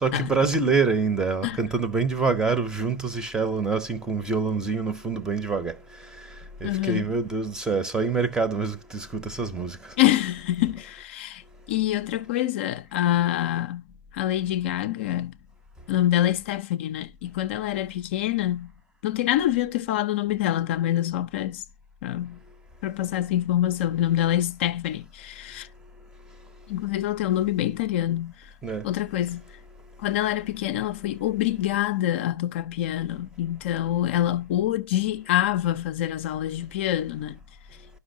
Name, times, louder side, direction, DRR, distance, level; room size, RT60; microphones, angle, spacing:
voice 1, 0.0-10.0 28.6-28.9, right 4 dB, 10° right, 0.6 m, -26 dB
voice 2, 6.6-7.1 10.0-11.4 11.7-13.8 14.1-15.3 15.9-18.7 19.0-21.6 22.0-22.4 22.8-25.7 26.7-28.3 28.8-29.4 30.0-37.4, left 13 dB, 45° left, 0.4 m, -26 dB
11.5 x 5.4 x 2.7 m
figure-of-eight pair, 120°, 9 cm